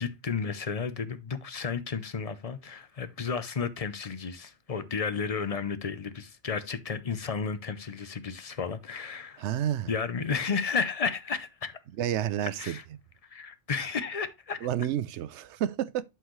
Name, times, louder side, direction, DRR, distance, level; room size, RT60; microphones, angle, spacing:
voice 1, 0.0-9.4 9.9-11.8 12.6-12.8 13.2-14.6, left 5 dB, 40° left, 0.7 m, -32 dB
voice 2, 9.4-9.9 12.0-12.8 14.6-16.0, right 11 dB, 90° right, 0.9 m, -30 dB
11.5 x 4.6 x 3.1 m
omnidirectional pair, 1.1 m